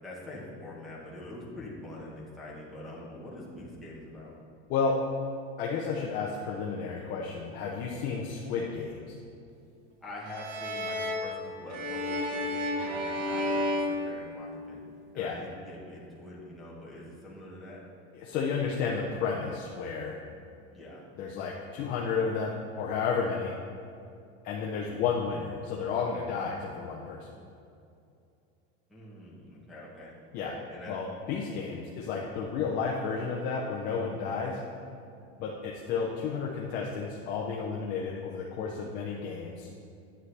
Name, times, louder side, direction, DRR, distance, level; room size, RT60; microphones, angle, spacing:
voice 1, 0.0-4.3 10.0-14.8 15.1-17.8 20.7-21.0 28.9-30.1 30.7-31.0 31.3-31.4, left 1 dB, ahead, -8 dB, 1.0 m, -44 dB
voice 2, 4.7-5.0 5.6-9.1 15.2-15.4 18.1-20.2 21.2-23.6 24.4-27.3 30.3-30.6 30.9-34.6 35.4-39.7, left 5 dB, 25° left, -2 dB, 0.5 m, -32 dB
sound 1, 10.3-14.9, left 1 dB, 80° right, 1.3 m, -32 dB
9.8 x 7.9 x 3.3 m, 2.5 s
supercardioid pair, 180°, 33 cm